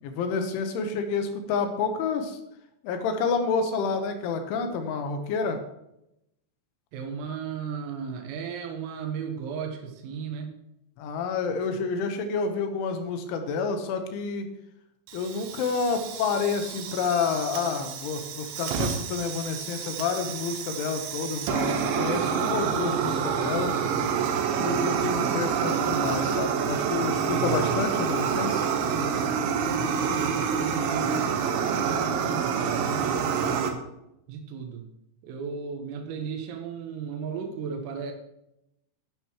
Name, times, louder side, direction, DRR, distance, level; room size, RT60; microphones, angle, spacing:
voice 1, 0.0-2.4 2.8-5.6 11.0-14.5 15.1-23.7 24.5-28.6, left 5 dB, 75° left, 6 dB, 3.4 m, -29 dB
voice 2, 6.9-10.5 24.9-25.3 27.3-27.9 29.4-31.3 31.8-33.9 34.3-34.8 35.2-38.1, right 7 dB, 90° right, 3 dB, 3.9 m, -35 dB
Fire, 15.1-33.7, right 6 dB, 75° right, 3.2 m, -28 dB
12.0 x 11.5 x 3.1 m, 0.83 s
omnidirectional pair, 5.8 m